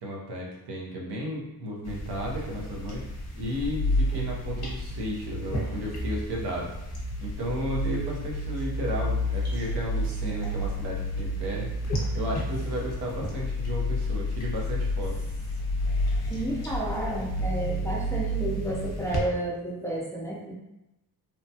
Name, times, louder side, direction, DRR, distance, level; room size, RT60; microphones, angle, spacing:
voice 1, 0.0-3.0 3.3-6.7 7.2-11.7 12.1-15.1, equal, 85° right, -2 dB, 0.8 m, -33 dB
sound 1, 1.8-19.2, left 1 dB, 40° left, 0.8 m, -30 dB
voice 2, 16.3-20.5, right 1 dB, 10° left, -5 dB, 0.4 m, -31 dB
3.0 x 2.2 x 2.7 m, 0.90 s
wide cardioid pair, 150°, 39 cm